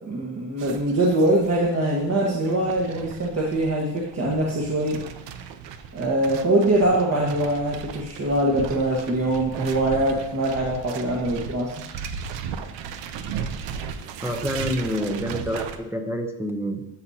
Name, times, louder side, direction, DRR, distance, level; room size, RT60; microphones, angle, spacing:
voice 1, 0.0-5.0 5.9-11.7, right 1 dB, 35° right, -3 dB, 1.5 m, -23 dB
sound 1, 0.6-15.8, right 7 dB, 90° right, 0.8 m, -36 dB
voice 2, 14.2-16.9, equal, 5° right, 3 dB, 0.8 m, -27 dB
13.0 x 6.2 x 2.8 m, 0.87 s
cardioid pair, 120°, 42 cm